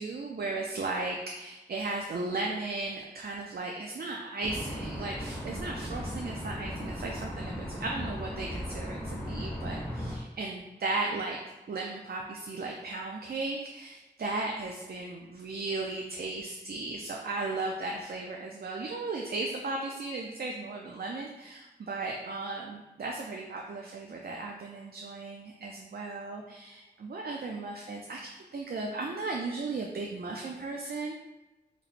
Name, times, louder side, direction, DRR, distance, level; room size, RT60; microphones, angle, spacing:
voice 1, 0.0-11.4 11.7-31.1, right 3 dB, 60° right, 0 dB, 0.4 m, -36 dB
sound 1, 4.4-10.2, equal, 10° left, 1.0 m, -37 dB
4.0 x 3.1 x 2.5 m, 1.1 s
wide cardioid pair, 55°, 18 cm